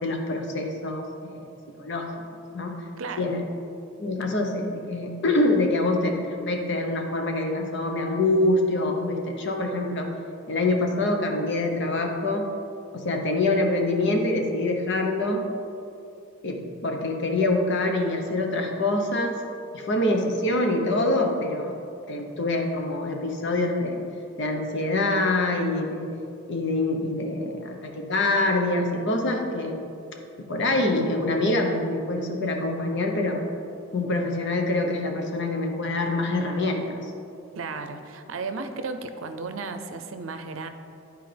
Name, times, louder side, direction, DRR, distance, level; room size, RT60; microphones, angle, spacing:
voice 1, 0.0-1.4 1.8-2.0 2.5-2.7 3.2-3.4 4.0-10.1 10.5-12.5 12.9-15.5 16.4-19.4 19.7-21.8 22.1-24.0 24.4-26.1 26.5-29.8 30.5-33.4 33.9-37.0, left 2 dB, 60° left, 2 dB, 0.9 m, -25 dB
voice 2, 37.5-40.7, right 4 dB, 75° right, 8 dB, 0.5 m, -34 dB
11.5 x 4.5 x 3.4 m, 2.6 s
head